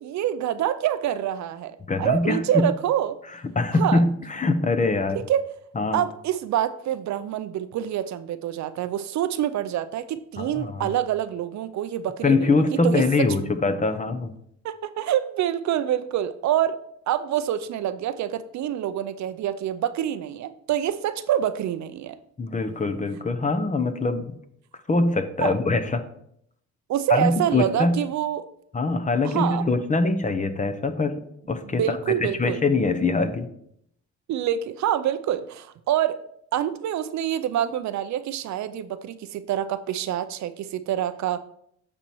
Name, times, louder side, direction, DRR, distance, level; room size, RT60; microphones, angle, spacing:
voice 1, 0.0-3.2 3.8-4.0 5.3-5.5 5.9-12.5 12.8-13.3 14.6-16.8 17.1-22.2 25.4-25.5 26.9-28.5 29.2-29.6 31.7-32.6 34.3-36.2 36.5-41.4, right 11 dB, 70° right, 13 dB, 0.6 m, -26 dB
voice 2, 1.9-2.7 3.5-5.2 5.7-6.0 10.4-10.9 12.2-14.3 22.4-24.4 24.9-26.0 27.1-28.0 28.7-31.2 31.5-33.5, left 3 dB, 25° left, 9 dB, 0.9 m, -23 dB
8.6 x 4.3 x 4.5 m, 0.71 s
cardioid pair, 90°, 30 cm